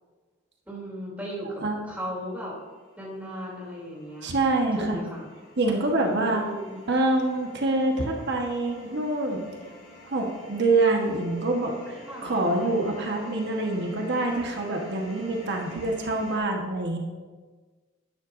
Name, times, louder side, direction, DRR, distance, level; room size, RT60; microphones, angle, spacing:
voice 1, 0.7-2.5 3.0-4.3 4.8-5.2 6.0-6.7 12.1-12.3, equal, 10° right, -5 dB, 3.0 m, -36 dB
sound 1, 2.6-16.4, left 1 dB, 50° left, 2.4 m, -49 dB
voice 2, 4.2-5.0 5.6-6.4 6.9-9.5 10.0-17.0, right 2 dB, 60° right, 1 dB, 1.3 m, -26 dB
12.0 x 9.9 x 2.6 m, 1.4 s
head